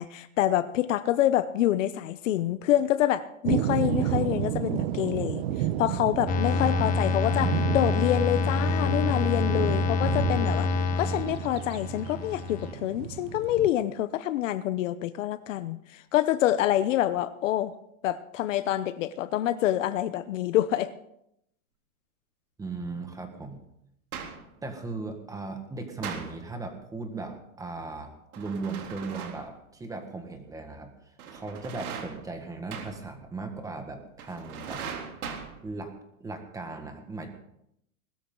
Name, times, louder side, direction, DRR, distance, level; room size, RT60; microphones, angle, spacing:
voice 1, 0.0-5.4 5.8-10.7 11.0-17.7 18.0-20.9, left 13 dB, 60° left, 14 dB, 0.9 m, -27 dB
sound 1, 3.4-13.7, right 12 dB, 45° right, 0.9 m, -31 dB
sound 2, 6.3-12.7, left 4 dB, 20° left, 0.9 m, -27 dB
voice 2, 22.6-23.6 24.6-30.9 31.3-34.8 35.6-35.9 36.2-37.3, right 3 dB, 10° right, 5 dB, 1.7 m, -37 dB
sound 3, 24.1-24.5 26.0-26.6 28.3-29.6 31.2-32.4 32.7-33.2 34.2-35.8, right 7 dB, 85° right, 3.4 m, -39 dB
20.5 x 13.0 x 3.9 m, 0.77 s
supercardioid pair, 160°, 42 cm